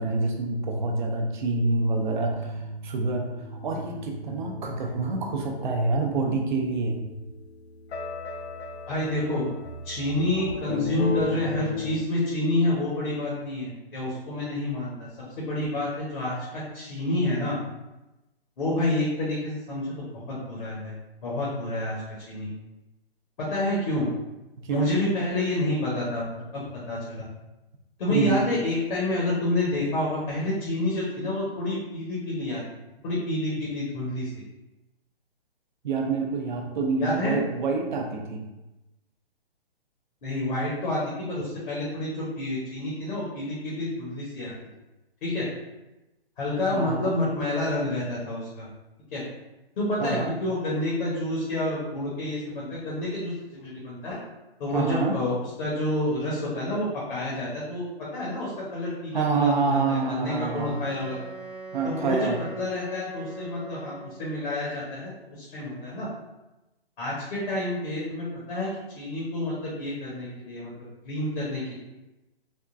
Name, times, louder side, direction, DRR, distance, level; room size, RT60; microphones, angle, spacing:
voice 1, 0.0-3.3 3.6-7.0 24.6-24.9 28.1-28.4 35.8-38.4 46.7-47.1 50.0-50.3 54.7-55.2 59.1-60.8 61.7-62.4, right 3 dB, 50° right, 2 dB, 0.6 m, -27 dB
sound 1, 2.0-12.1, left 3 dB, 85° left, 0.5 m, -36 dB
voice 2, 8.9-9.5 9.8-15.1 15.4-17.6 18.6-20.9 21.2-22.0 22.3-22.5 23.4-24.1 24.7-26.6 26.9-27.3 28.0-32.6 33.0-34.3 37.0-37.4 40.2-44.5 45.2-45.5 46.4-48.7 49.1-49.2 49.8-54.2 54.6-57.8 58.1-61.2 61.8-62.3 62.6-66.1 67.0-68.7 68.9-70.7 71.0-71.8, left 1 dB, 50° left, -6 dB, 1.0 m, -29 dB
Wind instrument woodwind instrument, 60.2-64.4, right 3 dB, 85° right, 1.0 m, -41 dB
3.6 x 2.2 x 2.5 m, 1.0 s
hypercardioid pair, 155°, 32 cm